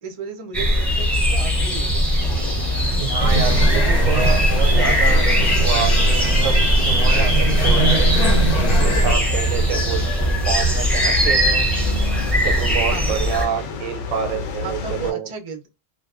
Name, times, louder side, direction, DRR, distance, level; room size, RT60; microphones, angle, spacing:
voice 1, 0.0-2.0 12.9-13.2 14.6-15.7, right 5 dB, 45° right, 0.4 m, -34 dB
sound 1, 0.5-13.4, equal, ahead, 0.7 m, -20 dB
sound 2, 2.2-15.1, left 4 dB, 70° left, 0.9 m, -33 dB
voice 2, 3.0-11.7 12.4-15.3, right 8 dB, 90° right, 1.0 m, -28 dB
sound 3, 3.2-9.2, right 1 dB, 90° left, 1.2 m, -18 dB
2.5 x 2.2 x 2.4 m
omnidirectional pair, 1.3 m